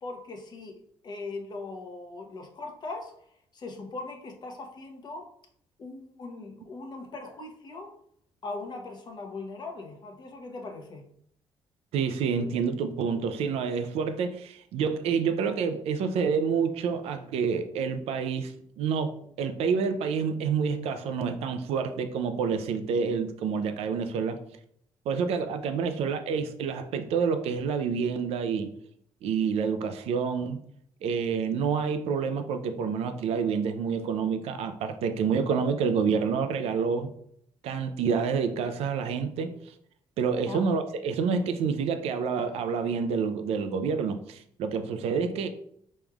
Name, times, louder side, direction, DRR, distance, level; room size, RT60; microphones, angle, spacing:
voice 1, 0.0-3.1 3.5-5.3 5.8-7.9 8.4-11.0 40.5-40.6, left 3 dB, 45° left, 3 dB, 0.9 m, -40 dB
voice 2, 11.9-24.4 25.1-28.7 29.2-30.6 31.0-37.1 37.6-39.5 40.2-45.5, right 6 dB, 90° right, 8 dB, 0.5 m, -28 dB
5.3 x 3.1 x 2.3 m, 0.67 s
cardioid pair, 110°, 10 cm